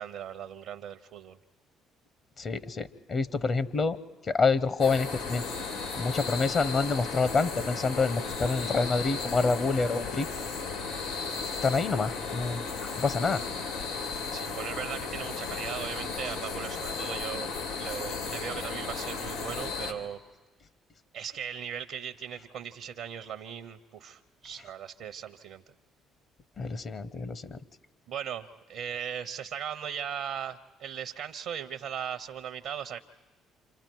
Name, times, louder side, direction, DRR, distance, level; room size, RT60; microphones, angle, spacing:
voice 1, 0.0-1.4 14.3-17.5 17.8-20.2 21.1-25.6 28.1-33.0, right 8 dB, 70° right, 8 dB, 0.7 m, -38 dB
voice 2, 2.4-4.0 4.3-5.5 5.9-10.3 11.6-13.4 26.6-27.6, left 4 dB, 50° left, 16 dB, 0.8 m, -27 dB
sound 1, 4.8-19.9, left 4 dB, 85° left, 2.3 m, -35 dB
28.5 x 26.5 x 4.6 m, 1.3 s
hypercardioid pair, 55°, 0 cm